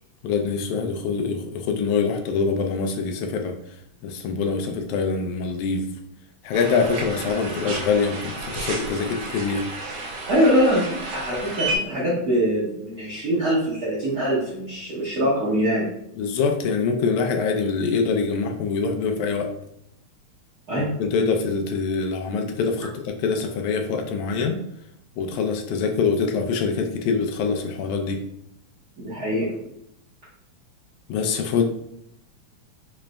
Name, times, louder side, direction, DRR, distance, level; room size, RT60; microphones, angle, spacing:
voice 1, 0.2-3.6 4.0-5.9 6.4-9.7 16.2-19.5 20.8-24.6 25.2-28.2 31.1-31.6, left 5 dB, 85° left, 4 dB, 1.9 m, -24 dB
sound 1, 6.5-11.8, right 2 dB, 75° right, 1.5 m, -32 dB
voice 2, 10.3-15.9 20.7-20.9 29.0-29.5, equal, 60° right, -9 dB, 1.0 m, -23 dB
5.0 x 3.2 x 2.2 m, 0.76 s
omnidirectional pair, 3.3 m